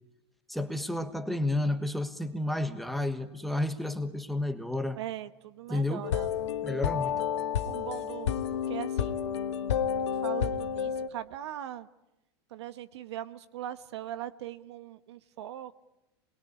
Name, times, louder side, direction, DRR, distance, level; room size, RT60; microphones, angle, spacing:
voice 1, 0.5-5.0 5.7-6.1 6.6-7.3, left 1 dB, ahead, 7 dB, 1.4 m, -31 dB
voice 2, 5.0-6.3 7.6-9.2 10.2-11.9 12.5-15.7, right 12 dB, 80° right, 12 dB, 1.2 m, -40 dB
sound 1, 6.0-11.1, left 8 dB, 90° left, 1.7 m, -30 dB
27.0 x 21.5 x 9.8 m, 0.96 s
supercardioid pair, 145°, 14 cm